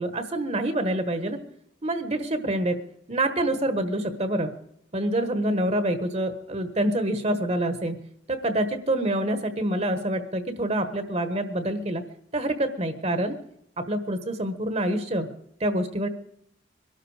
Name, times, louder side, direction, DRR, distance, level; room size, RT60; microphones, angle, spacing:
voice 1, 0.0-1.4 1.8-2.8 3.1-4.5 4.9-8.0 8.3-12.0 12.3-13.4 13.8-15.3 15.6-16.1, right 1 dB, 35° right, 9 dB, 1.3 m, -26 dB
23.0 x 12.5 x 4.9 m, 0.74 s
head